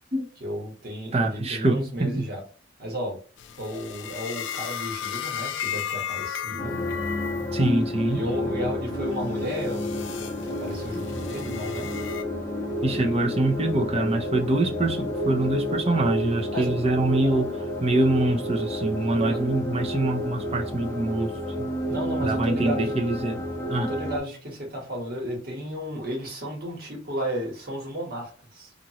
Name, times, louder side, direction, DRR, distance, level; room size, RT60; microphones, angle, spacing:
voice 1, 0.4-2.4 2.8-3.2 3.6-6.8 8.1-10.0 10.4-11.9 16.5-16.7 19.3-19.4 21.9-22.9 23.9-28.7, equal, 50° right, 1.4 m, -33 dB
voice 2, 1.1-2.2 7.5-8.2 12.8-21.7 22.2-23.9, right 2 dB, 30° right, 0.6 m, -25 dB
sound 1, 3.4-7.6 8.0-8.4 9.0-12.2, left 9 dB, 65° left, 0.3 m, -35 dB
sound 2, 6.6-24.2, left 1 dB, 15° left, 0.7 m, -30 dB
2.9 x 2.5 x 2.8 m
head